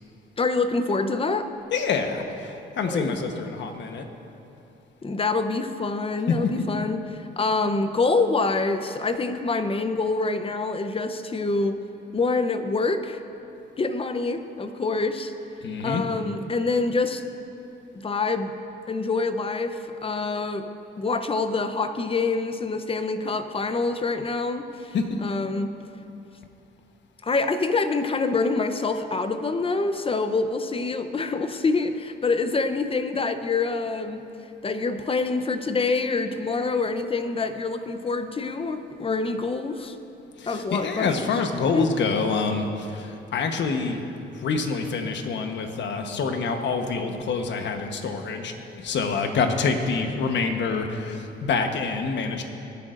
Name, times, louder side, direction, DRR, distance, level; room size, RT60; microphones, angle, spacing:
voice 1, 0.4-1.5 2.9-3.2 5.0-11.8 12.1-13.2 13.8-15.3 15.8-17.2 17.9-18.5 18.9-20.6 21.0-24.9 25.2-25.7 27.2-34.3 34.6-40.0 40.5-41.3 41.7-41.9, left 3 dB, 30° left, 9 dB, 0.8 m, -26 dB
voice 2, 1.7-4.1 6.3-6.6 15.6-16.0 24.9-25.2 40.4-44.0 44.3-52.4, left 4 dB, 65° left, 5 dB, 1.2 m, -26 dB
21.0 x 10.0 x 2.6 m, 2.8 s
cardioid pair, 90°, 20 cm